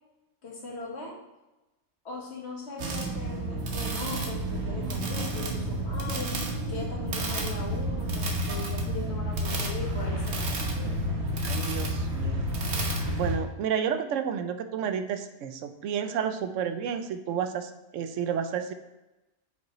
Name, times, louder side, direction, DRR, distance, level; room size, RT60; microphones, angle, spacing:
voice 1, 0.4-1.2 2.0-10.5, left 3 dB, 60° left, -1 dB, 1.6 m, -39 dB
sound 1, 2.8-13.4, right 1 dB, 65° right, 1.3 m, -30 dB
voice 2, 11.4-12.5 13.1-18.7, right 7 dB, 80° right, 8 dB, 1.0 m, -31 dB
8.0 x 5.3 x 3.0 m, 1.0 s
omnidirectional pair, 1.3 m